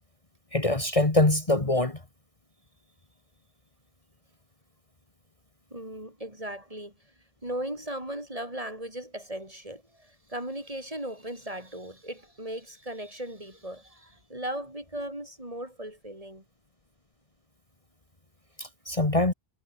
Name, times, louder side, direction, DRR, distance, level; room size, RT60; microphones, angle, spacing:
voice 1, 0.5-2.0 18.6-19.3, left 2 dB, 35° left, 2.1 m, -24 dB
voice 2, 5.7-16.4, right 1 dB, 35° right, 6.5 m, -37 dB
omnidirectional pair, 1.0 m